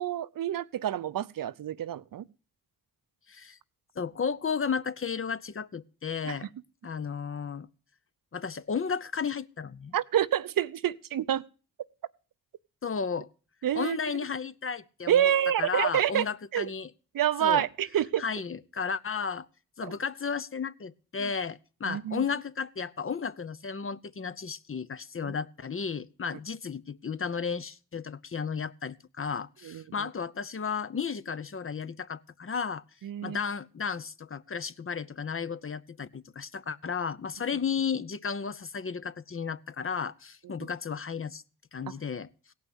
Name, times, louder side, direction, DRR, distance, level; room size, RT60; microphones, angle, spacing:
voice 1, 0.0-2.3 6.3-6.5 9.9-11.5 13.6-14.0 15.1-16.3 16.5-16.7 17.1-18.2 19.8-19.9 21.2-21.3 21.8-22.2 25.2-25.3 29.6-30.1 33.0-33.4 40.6-40.7 41.9-42.0, right 11 dB, 65° right, 0.6 m, -28 dB
voice 2, 3.3-3.6 4.0-6.5 6.8-7.7 8.3-9.9 12.8-13.3 13.7-15.3 15.6-16.9 17.4-17.6 18.2-19.5 19.8-32.8 33.2-41.4 41.7-42.3, left 6 dB, 35° left, 0.8 m, -33 dB
16.5 x 5.7 x 8.0 m
cardioid pair, 50°, 37 cm